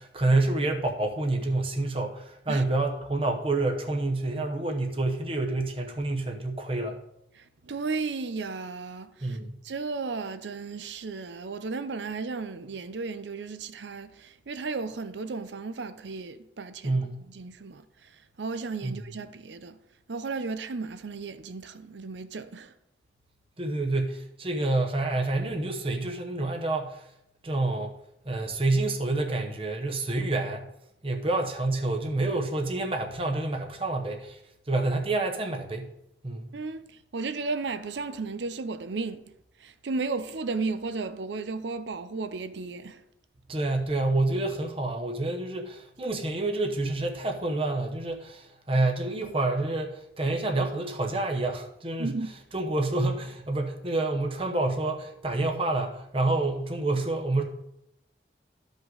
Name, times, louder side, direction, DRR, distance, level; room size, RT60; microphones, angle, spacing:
voice 1, 0.0-7.0 9.2-9.5 16.8-17.2 18.8-19.0 23.6-27.0 27.4-27.9 28.2-30.7 31.0-34.4 34.7-35.9 36.2-36.5 43.5-52.1 52.5-57.4, right 2 dB, 30° right, 0.9 m, -28 dB
voice 2, 7.4-9.4 9.6-17.0 17.3-19.8 20.1-22.7 36.5-39.3 39.6-43.0 52.0-52.4, right 4 dB, 90° right, 0.6 m, -34 dB
12.5 x 5.2 x 3.9 m
head